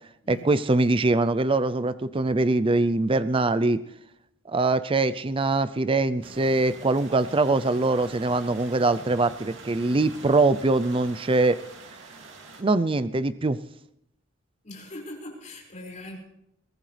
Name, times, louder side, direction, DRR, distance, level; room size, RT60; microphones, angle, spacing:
voice 1, 0.3-3.8 4.5-11.6 12.6-13.6, right 2 dB, 25° right, 13 dB, 0.5 m, -23 dB
sound 1, 6.2-12.6, right 3 dB, 65° right, 2.5 m, -45 dB
voice 2, 14.6-16.2, left 1 dB, 35° left, -1 dB, 5.5 m, -41 dB
22.5 x 17.5 x 3.4 m, 0.80 s
head